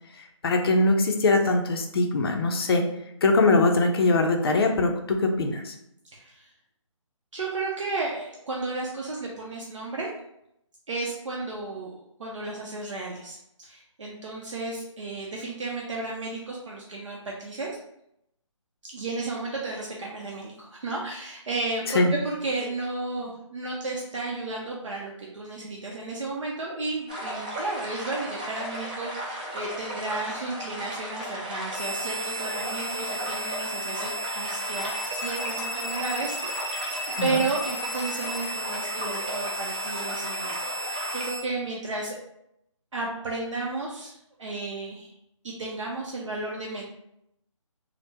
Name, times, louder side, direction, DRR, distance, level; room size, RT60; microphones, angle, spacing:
voice 1, 0.2-2.9 3.2-5.7 21.9-22.1 37.2-37.3, left 2 dB, 50° left, 4 dB, 0.5 m, -22 dB
voice 2, 6.1-6.5 7.3-10.1 10.9-17.8 18.8-36.6 37.2-42.2 42.9-45.1 45.4-46.8, right 3 dB, 65° right, -3 dB, 0.6 m, -33 dB
sound 1, 27.1-41.3, right 1 dB, 15° right, 0.4 m, -35 dB
sound 2, 31.7-41.4, right 1 dB, 5° left, 1.2 m, -34 dB
3.3 x 2.0 x 2.7 m, 0.78 s
figure-of-eight pair, 155°, 17 cm